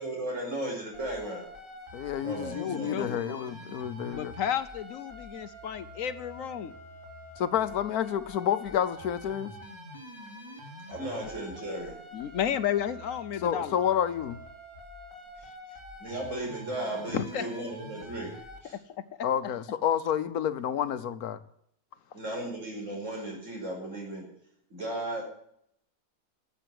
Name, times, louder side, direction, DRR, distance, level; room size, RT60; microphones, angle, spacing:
voice 1, 0.0-1.4 2.2-3.2 10.9-12.0 16.0-18.3 18.6-18.8 22.1-24.2 24.7-25.2, right 1 dB, 55° right, -1 dB, 5.7 m, -35 dB
sound 1, 0.9-18.6, equal, 20° right, 3.2 m, -46 dB
voice 2, 1.9-4.3 7.4-9.5 13.4-14.4 19.2-21.4, left 9 dB, 85° left, 13 dB, 1.4 m, -29 dB
voice 3, 2.6-3.6 4.1-6.7 11.2-11.3 12.1-13.7 17.1-17.4 19.4-19.5, left 9 dB, 65° left, 13 dB, 1.0 m, -32 dB
12.5 x 8.1 x 9.2 m, 0.72 s
omnidirectional pair, 1.5 m